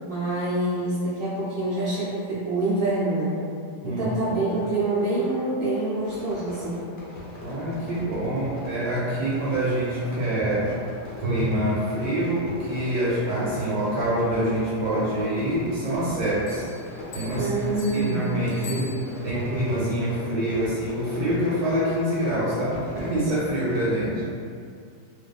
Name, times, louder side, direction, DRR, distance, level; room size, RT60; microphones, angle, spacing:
voice 1, 0.0-3.4 3.8-6.9 17.3-18.3, right 2 dB, 65° right, -10 dB, 0.5 m, -26 dB
voice 2, 3.8-4.3 7.4-10.7 11.2-16.7 17.1-18.9 19.2-24.2, right 1 dB, 80° right, -8 dB, 1.2 m, -26 dB
Fireworks, 6.0-23.9, left 1 dB, 60° left, 0.5 m, -40 dB
sound 1, 16.5-19.5, left 3 dB, 75° left, 1.1 m, -44 dB
2.6 x 2.3 x 2.3 m, 2.3 s
omnidirectional pair, 1.8 m